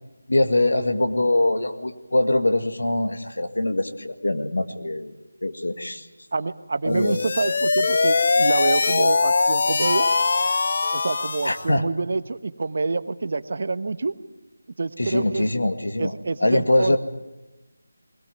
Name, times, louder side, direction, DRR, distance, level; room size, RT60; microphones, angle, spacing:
voice 1, 0.3-5.1 5.4-6.1 6.8-7.2 11.4-11.8 15.0-16.1 16.4-17.0, left 1 dB, 75° left, 7 dB, 2.0 m, -23 dB
voice 2, 6.3-10.1 10.9-14.1 14.8-15.5 16.0-17.0, right 3 dB, 50° right, 12 dB, 1.1 m, -27 dB
sound 1, 6.9-11.7, left 4 dB, 45° left, 0.7 m, -21 dB
21.0 x 18.0 x 9.4 m, 1.0 s
figure-of-eight pair, 165°, 0 cm